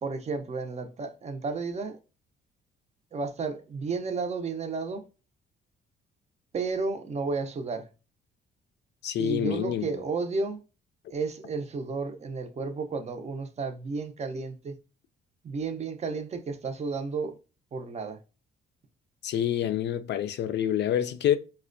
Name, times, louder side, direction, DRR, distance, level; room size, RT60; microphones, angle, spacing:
voice 1, 0.0-2.0 3.1-5.1 6.5-7.9 9.2-10.6 11.1-14.8 15.4-17.4 17.7-18.2, right 4 dB, 35° right, 0.5 m, -32 dB
voice 2, 9.0-10.0 19.2-21.4, left 10 dB, 60° left, 0.4 m, -27 dB
4.2 x 2.1 x 2.5 m
cardioid pair, 90°, 20 cm